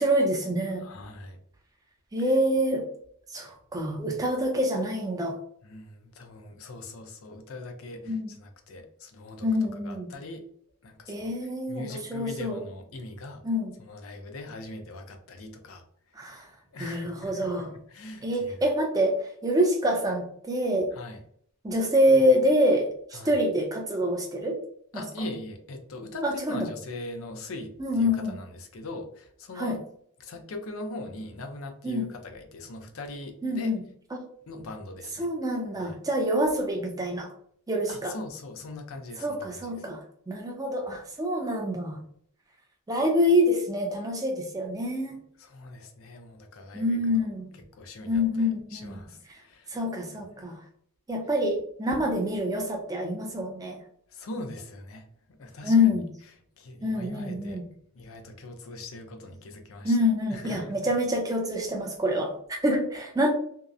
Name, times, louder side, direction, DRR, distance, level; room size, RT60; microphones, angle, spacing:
voice 1, 0.0-0.9 2.1-2.9 3.3-5.4 8.1-8.3 9.4-10.1 11.1-12.6 13.4-13.7 16.2-16.5 16.8-17.7 18.2-20.9 21.6-24.6 24.9-25.0 26.2-26.7 27.8-28.4 29.6-29.8 31.8-32.1 33.4-33.8 34.1-34.2 35.2-37.3 37.7-38.1 39.2-40.0 40.3-42.0 42.9-45.2 46.7-47.5 48.1-49.0 49.7-50.6 51.1-53.8 55.6-56.1 56.8-57.6 59.8-63.3, equal, 15° right, 1 dB, 0.4 m, -26 dB
voice 2, 0.7-1.4 2.2-2.3 5.6-9.5 9.8-10.4 10.8-13.4 13.8-16.3 16.7-18.6 20.9-21.2 23.1-23.4 24.9-29.8 30.2-33.8 34.5-35.3 35.8-36.0 37.9-39.4 45.4-47.3 47.7-49.7 51.9-52.0 54.1-55.7 56.6-57.6 57.9-60.0 60.3-60.9, left 2 dB, 70° left, 5 dB, 0.5 m, -41 dB
2.7 x 2.0 x 2.3 m, 0.64 s
head